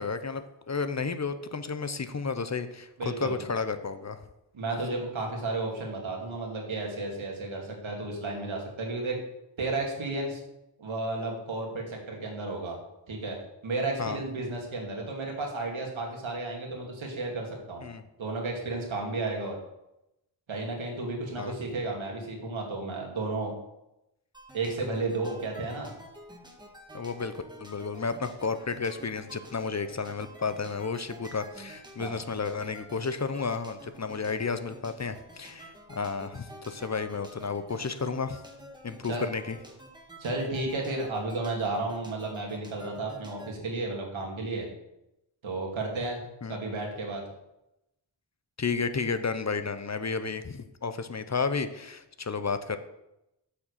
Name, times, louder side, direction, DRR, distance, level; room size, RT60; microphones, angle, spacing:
voice 1, 0.0-4.2 14.0-14.2 17.8-18.0 21.4-21.5 26.9-38.4 38.8-39.6 46.4-46.6 48.6-52.8, left 4 dB, 35° left, 11 dB, 0.7 m, -32 dB
voice 2, 3.0-3.3 4.5-9.2 9.6-10.4 10.8-12.8 13.1-13.4 13.6-17.8 18.2-19.6 20.5-23.5 24.5-25.9 32.0-32.2 39.0-39.3 40.2-44.7 45.4-46.2 46.5-47.2, right 2 dB, 85° right, 0 dB, 2.5 m, -33 dB
sound 1, 24.3-43.5, equal, 10° right, 1.7 m, -49 dB
8.2 x 6.1 x 6.6 m, 0.88 s
wide cardioid pair, 75°, 46 cm